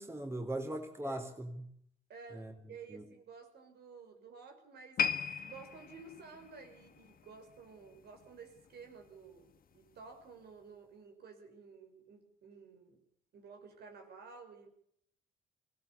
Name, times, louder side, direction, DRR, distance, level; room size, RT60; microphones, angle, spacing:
voice 1, 0.0-1.7 2.3-2.5 2.9-3.0, right 1 dB, 15° right, 4 dB, 3.8 m, -39 dB
voice 2, 2.1-5.0 5.4-13.0 13.3-14.7, right 5 dB, 65° right, 4 dB, 5.7 m, -53 dB
sound 1, 5.0-8.3 8.6-8.8 9.5-9.6, left 7 dB, 55° left, 1.5 m, -38 dB
22.0 x 17.0 x 8.5 m, 0.68 s
supercardioid pair, 65°, 18 cm